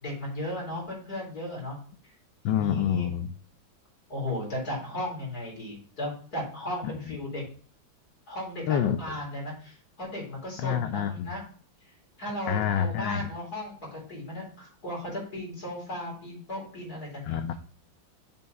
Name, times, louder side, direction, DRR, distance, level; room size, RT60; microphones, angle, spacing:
voice 1, 0.0-1.8 2.0-2.1 2.5-3.1 4.1-7.4 8.3-11.5 12.2-17.4, left 1 dB, 50° left, -3 dB, 4.3 m, -36 dB
voice 2, 2.4-3.3 6.8-7.2 8.7-9.0 10.6-11.3 12.5-13.3 17.3-17.5, left 9 dB, 75° left, 8 dB, 1.3 m, -27 dB
7.3 x 4.4 x 5.3 m, 0.43 s
omnidirectional pair, 2.1 m